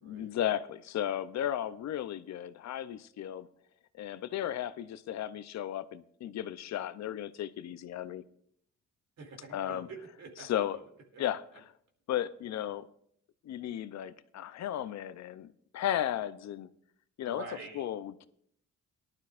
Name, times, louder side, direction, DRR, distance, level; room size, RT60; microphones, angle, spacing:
voice 1, 0.0-3.5 4.0-8.2 9.5-9.9 10.4-10.8 11.2-11.7 12.1-12.9 13.4-16.7 17.2-17.4 17.7-18.3, left 11 dB, 60° left, 14 dB, 0.6 m, -35 dB
voice 2, 9.2-10.5 10.7-10.8 11.1-11.2 17.2-17.8, right 3 dB, 60° right, 1 dB, 2.8 m, -46 dB
18.0 x 11.5 x 2.5 m, 0.70 s
cardioid pair, 90°, 30 cm